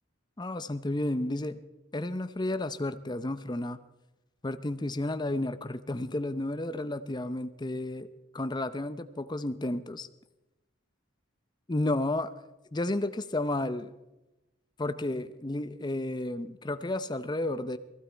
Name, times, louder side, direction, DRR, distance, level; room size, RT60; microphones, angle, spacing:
voice 1, 0.4-1.6 1.9-3.8 4.4-8.1 8.3-10.1 11.7-12.3 12.7-13.9 14.8-17.8, left 1 dB, 20° left, 11 dB, 0.6 m, -32 dB
19.5 x 15.0 x 4.5 m, 1.0 s
head